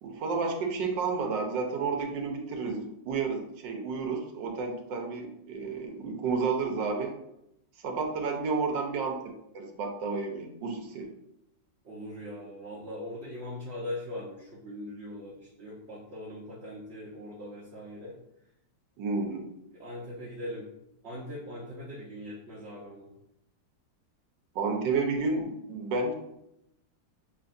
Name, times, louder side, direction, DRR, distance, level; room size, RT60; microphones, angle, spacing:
voice 1, 0.0-7.1 7.8-9.2 9.5-11.1 19.0-19.5 24.5-26.1, right 4 dB, 75° right, 3 dB, 1.4 m, -31 dB
voice 2, 11.8-18.2 19.7-20.7 21.0-23.1, left 1 dB, 50° right, -5 dB, 0.8 m, -40 dB
6.6 x 2.9 x 2.6 m, 0.82 s
omnidirectional pair, 2.0 m